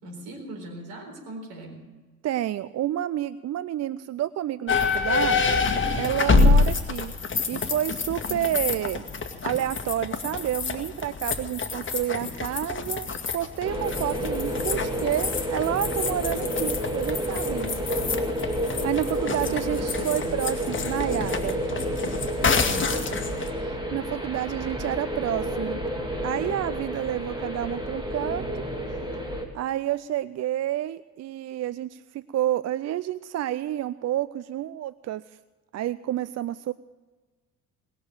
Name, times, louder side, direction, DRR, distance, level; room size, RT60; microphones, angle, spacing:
voice 1, 0.0-1.9 8.3-8.7 19.0-20.4 22.5-23.5, right 1 dB, 70° right, 3 dB, 4.2 m, -41 dB
voice 2, 2.2-5.6 5.9-7.1 7.5-9.0 9.4-17.8 18.4-21.6 23.6-25.8 26.2-28.7 29.5-35.2 35.7-36.7, right 12 dB, 40° right, 16 dB, 0.5 m, -29 dB
sound 1, 4.7-23.5, left 4 dB, 30° left, 1.8 m, -27 dB
sound 2, 13.6-29.5, equal, 10° right, 2.9 m, -30 dB
20.0 x 6.8 x 9.0 m, 1.3 s
hypercardioid pair, 55°, 41 cm